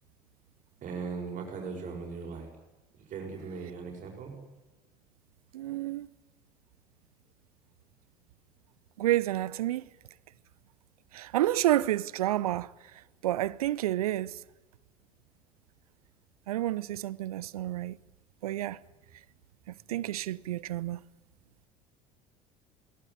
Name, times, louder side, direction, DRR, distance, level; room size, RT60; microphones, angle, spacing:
voice 1, 0.8-2.5 3.0-4.3, right 5 dB, 40° right, 6.3 m, -38 dB
voice 2, 5.5-6.1 9.0-9.8 11.1-12.7 13.2-14.4 16.5-18.0 18.4-18.8 19.9-21.0, right 14 dB, 70° right, 0.7 m, -29 dB
22.5 x 18.5 x 9.8 m
figure-of-eight pair, 65°, 20 cm